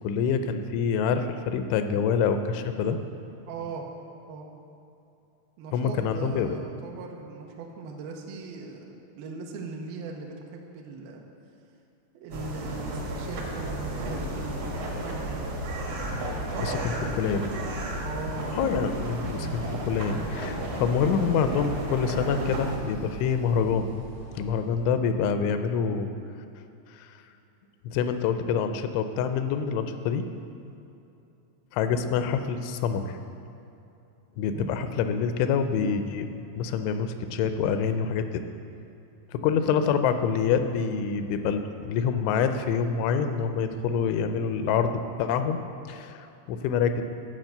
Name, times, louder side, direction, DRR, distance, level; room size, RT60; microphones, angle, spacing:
voice 1, 0.0-3.0 5.7-6.6 16.6-16.7 17.2-17.5 18.6-23.9 24.4-26.1 27.0-27.1 27.9-30.2 31.7-33.2 34.4-38.4 39.3-45.6 45.9-47.0, left 6 dB, 85° left, 8 dB, 2.9 m, -26 dB
voice 2, 3.5-3.9 4.3-4.5 5.6-11.2 12.1-15.5 16.5-17.4 18.0-18.6 34.5-34.8, right 4 dB, 80° right, 0 dB, 2.1 m, -39 dB
sound 1, 12.3-22.8, right 1 dB, 60° right, 1.6 m, -33 dB
sound 2, 13.1-24.9, left 1 dB, 45° right, 1.1 m, -42 dB
12.0 x 6.0 x 7.9 m, 2.8 s
omnidirectional pair, 5.5 m